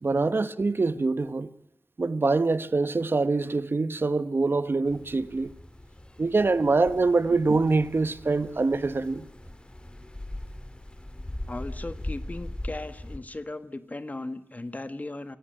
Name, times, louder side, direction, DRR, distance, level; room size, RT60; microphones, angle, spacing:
voice 1, 0.0-1.5 2.0-5.5 6.2-9.3, right 3 dB, 65° right, 1.1 m, -24 dB
sound 1, 4.8-13.2, left 1 dB, 25° left, 2.4 m, -40 dB
voice 2, 11.5-15.4, left 2 dB, 40° left, 1.6 m, -37 dB
28.0 x 16.0 x 8.9 m
wide cardioid pair, 70°, 4 cm